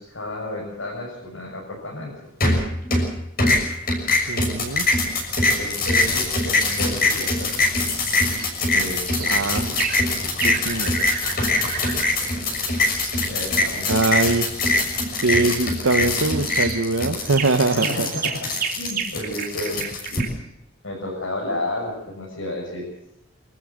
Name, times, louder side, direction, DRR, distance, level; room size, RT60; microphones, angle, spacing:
voice 1, 0.0-2.3 5.6-7.5 8.7-9.5 11.5-12.0 12.5-12.8 13.3-14.1 17.7-18.5 18.8-20.4 20.8-22.9, left 1 dB, 80° left, -4 dB, 7.2 m, -32 dB
sound 1, 2.4-3.1 3.4-20.2, left 2 dB, 45° left, 6.4 m, -23 dB
voice 2, 4.1-4.9 9.2-9.7 10.4-11.0 13.9-14.4 15.2-18.1, right 3 dB, 80° right, 6 dB, 1.1 m, -22 dB
sound 2, 8.3-8.5 9.1-9.4 9.8-10.0 10.4-12.2 15.8-16.0 16.5-16.8 17.2-20.3, right 7 dB, 45° right, 3.1 m, -31 dB
26.0 x 14.0 x 7.5 m, 0.80 s
head